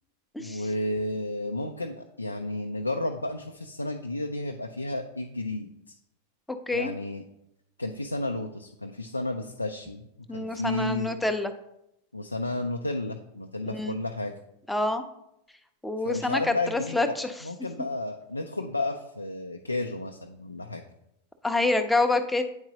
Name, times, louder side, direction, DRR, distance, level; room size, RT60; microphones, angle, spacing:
voice 1, 0.4-6.0 6.7-7.2 7.8-11.1 12.1-14.3 16.0-20.8, left 2 dB, 85° left, 4 dB, 0.4 m, -32 dB
voice 2, 10.3-11.5 13.7-14.0 14.7-15.0 15.8-17.3 21.4-22.4, left 2 dB, 5° left, 7 dB, 0.6 m, -27 dB
8.7 x 4.6 x 2.8 m, 0.80 s
figure-of-eight pair, 90°, 0 cm